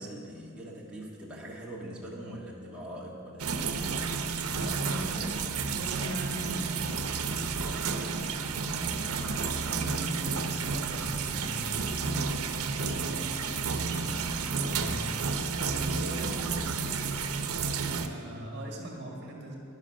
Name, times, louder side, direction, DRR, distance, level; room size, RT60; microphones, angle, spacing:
voice 1, 0.0-3.7, right 1 dB, 5° right, -5 dB, 1.6 m, -42 dB
sound 1, 3.4-18.1, right 5 dB, 90° right, 0.8 m, -31 dB
voice 2, 4.5-15.3 15.6-17.1 17.5-19.6, right 1 dB, 50° right, 0 dB, 1.8 m, -41 dB
11.0 x 10.5 x 6.3 m, 2.8 s
head